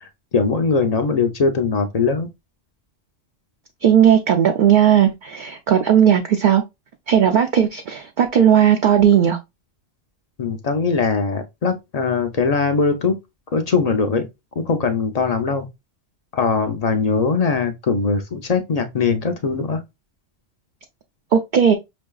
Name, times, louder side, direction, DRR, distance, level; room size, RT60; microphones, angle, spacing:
voice 1, 0.0-2.3 10.4-13.2 13.5-14.3 14.7-15.7 16.3-19.8, left 4 dB, 50° left, 0.4 m, -21 dB
voice 2, 3.8-6.6 7.1-9.4 21.3-21.7, right 9 dB, 60° right, 0.5 m, -16 dB
5.4 x 2.6 x 2.2 m
omnidirectional pair, 1.2 m